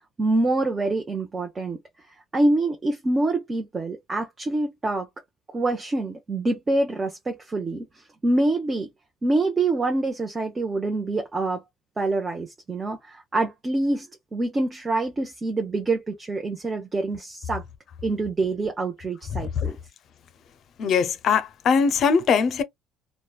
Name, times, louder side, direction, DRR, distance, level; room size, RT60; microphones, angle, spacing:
voice 1, 0.2-1.8 2.3-5.1 5.5-7.9 8.2-8.9 9.2-11.6 12.0-17.6 18.0-19.8, right 2 dB, 30° right, 0.7 m, -25 dB
voice 2, 20.8-22.6, left 6 dB, 55° left, 0.5 m, -21 dB
3.0 x 2.2 x 2.3 m
supercardioid pair, 80°, 0 cm